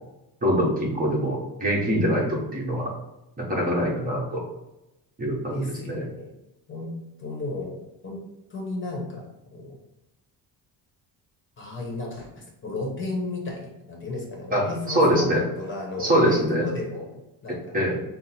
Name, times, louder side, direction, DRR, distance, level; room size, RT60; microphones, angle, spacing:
voice 1, 0.4-2.9 3.4-4.4 5.2-6.0 14.5-15.4 16.0-16.7 17.5-18.0, equal, 20° right, -3 dB, 1.1 m, -24 dB
voice 2, 5.5-6.3 6.7-6.9 7.2-7.8 8.0-8.2 8.5-9.3 9.5-9.8 11.6-15.3 15.6-17.8, left 2 dB, 30° left, 0 dB, 0.9 m, -34 dB
5.5 x 2.0 x 4.2 m, 0.93 s
cardioid pair, 150°, 38 cm